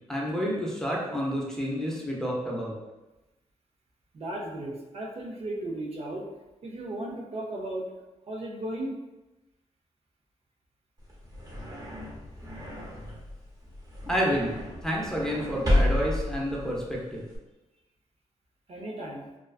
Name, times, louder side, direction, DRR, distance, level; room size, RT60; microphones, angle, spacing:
voice 1, 0.0-2.8 14.1-17.2, equal, 5° left, -4 dB, 0.6 m, -29 dB
voice 2, 4.1-6.3 6.6-7.9 8.3-9.0 18.7-19.3, right 1 dB, 55° right, -2 dB, 0.5 m, -35 dB
sound 1, 11.0-17.4, left 1 dB, 30° right, 0.9 m, -31 dB
2.3 x 2.3 x 2.3 m, 1.0 s
cardioid pair, 85°, 12 cm